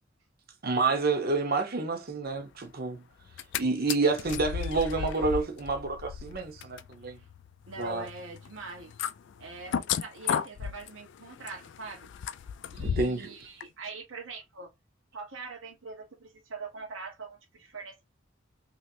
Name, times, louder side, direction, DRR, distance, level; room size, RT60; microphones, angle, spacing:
voice 1, 0.6-3.0 3.6-7.2 7.8-8.1 12.8-13.3, right 3 dB, 50° right, 0.9 m, -29 dB
sound 1, 3.2-3.6 3.9-13.3 13.6-13.7, left 8 dB, 65° left, 0.3 m, -35 dB
voice 2, 7.7-8.9 9.4-12.1 12.7-14.7 15.1-18.0, right 3 dB, 85° right, 1.1 m, -43 dB
3.1 x 2.9 x 2.7 m
head